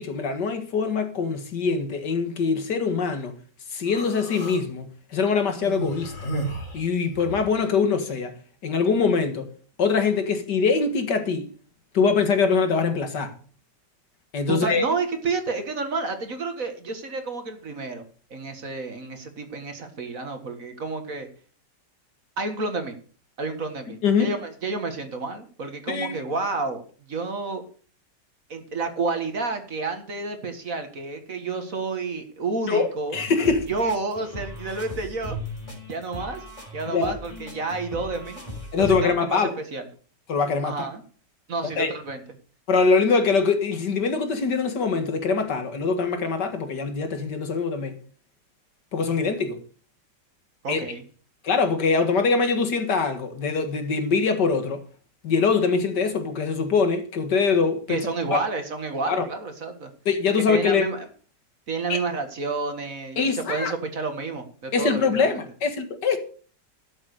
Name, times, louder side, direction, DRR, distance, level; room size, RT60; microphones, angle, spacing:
voice 1, 0.0-3.3 3.7-6.1 6.7-8.3 8.6-9.5 9.8-11.5 11.9-13.3 14.3-14.9 24.0-24.3 25.9-26.2 32.7-33.7 36.9-37.1 38.7-39.5 40.3-40.9 41.8-41.9 42.7-47.9 48.9-49.6 50.7-50.8 51.4-54.8 55.2-58.0 58.3-58.4 59.1-59.3 60.1-60.9 61.9-62.0 63.2-63.7 64.7-66.2, left 5 dB, 70° left, 2.3 m, -23 dB
Human voice, 3.9-4.6 5.5-7.5, right 2 dB, 45° left, 4.1 m, -33 dB
voice 2, 14.5-18.0 18.3-21.3 22.4-22.9 23.4-26.8 27.1-27.6 28.5-35.4 35.9-36.4 36.7-38.4 38.8-39.9 40.6-41.0 41.5-42.2 50.6-51.0 57.9-59.9 60.5-61.1 61.7-65.4, right 3 dB, 50° right, 2.0 m, -30 dB
sound 1, 33.1-39.0, left 1 dB, 20° left, 3.4 m, -38 dB
12.5 x 7.4 x 6.6 m
omnidirectional pair, 1.9 m